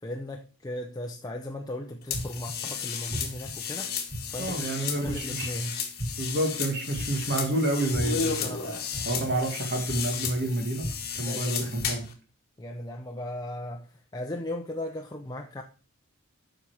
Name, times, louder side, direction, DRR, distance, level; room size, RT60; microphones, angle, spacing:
voice 1, 0.0-3.9 4.3-5.8 8.4-9.1 11.2-11.5 12.6-15.6, left 1 dB, 20° left, 0.7 m, -37 dB
sound 1, 2.1-12.1, left 6 dB, 45° left, 1.8 m, -34 dB
sound 2, 2.1-2.5 3.1-3.5 4.1-4.5 5.0-5.5 6.0-6.4 6.9-7.4 7.9-8.3 8.9-9.4 9.9-10.3 10.8-11.2 11.8-11.9, equal, 35° right, 1.3 m, -35 dB
voice 2, 4.4-5.5 6.2-8.5 9.1-10.9 11.2-12.1, right 1 dB, 50° right, 2.0 m, -29 dB
8.9 x 5.8 x 4.8 m
head